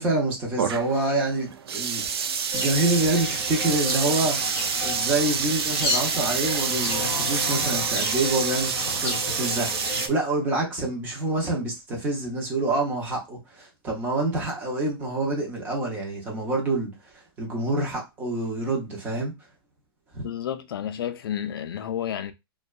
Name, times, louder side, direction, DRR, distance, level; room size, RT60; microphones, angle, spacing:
voice 1, 0.0-2.3 2.5-4.4 4.8-19.3 20.1-20.3, right 2 dB, 15° right, 0.6 m, -27 dB
sound 1, 0.6-10.1, right 6 dB, 75° right, 0.4 m, -28 dB
sound 2, 2.5-10.1, left 3 dB, 20° left, 0.8 m, -32 dB
voice 2, 20.2-22.3, left 10 dB, 65° left, 0.4 m, -31 dB
2.6 x 2.2 x 2.3 m
hypercardioid pair, 165°, 13 cm